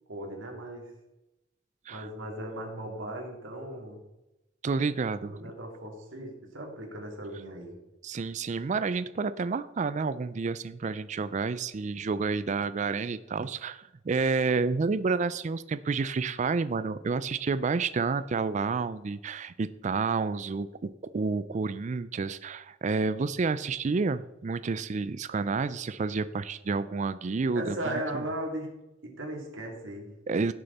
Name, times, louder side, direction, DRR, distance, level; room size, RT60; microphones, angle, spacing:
voice 1, 0.1-0.9 1.9-4.0 5.2-7.8 27.5-28.7 29.0-30.1, right 1 dB, 90° right, 1 dB, 3.0 m, -37 dB
voice 2, 4.6-5.5 8.0-27.8 28.1-28.2 30.3-30.5, right 4 dB, 40° right, 14 dB, 0.4 m, -30 dB
16.5 x 6.6 x 4.1 m, 0.96 s
head